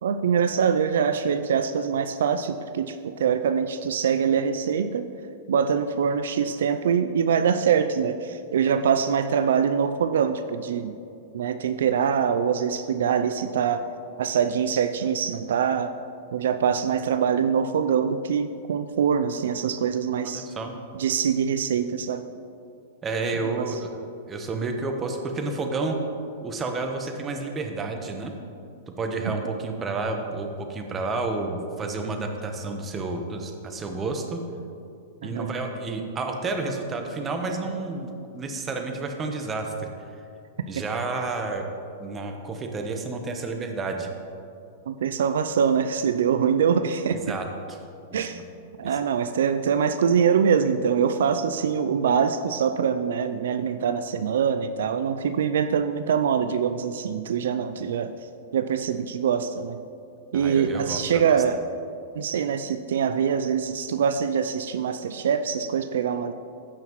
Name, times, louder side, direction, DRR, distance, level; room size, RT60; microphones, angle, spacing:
voice 1, 0.0-5.1 5.5-11.0 11.3-13.8 14.2-15.9 16.3-20.5 20.9-22.2 23.6-23.8 35.2-35.5 44.9-47.4 48.1-48.4 48.8-58.1 58.5-59.8 60.3-61.6 62.2-66.3, right 7 dB, 80° right, 9 dB, 0.3 m, -24 dB
voice 2, 20.2-20.7 23.0-23.9 24.3-26.0 26.4-28.3 28.9-34.4 35.2-39.9 40.7-41.7 42.0-44.1 47.1-47.8 48.1-48.4 48.8-48.9 60.3-61.4, right 3 dB, 20° right, 4 dB, 1.0 m, -30 dB
14.5 x 5.7 x 3.1 m, 2.5 s
hypercardioid pair, 125°, 0 cm